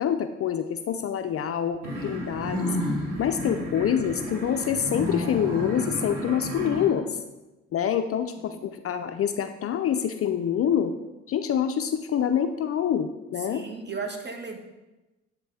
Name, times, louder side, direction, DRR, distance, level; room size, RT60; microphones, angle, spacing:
voice 1, 0.0-2.7 3.2-7.1 7.7-10.9 11.3-13.6, left 9 dB, 40° left, 8 dB, 0.5 m, -26 dB
sound 1, 1.8-6.9, left 1 dB, 60° right, 2.3 m, -31 dB
voice 2, 6.6-7.1 8.4-8.7 13.4-14.6, right 4 dB, 30° right, 3 dB, 1.4 m, -36 dB
9.2 x 3.2 x 4.9 m, 1.1 s
hypercardioid pair, 55°, 34 cm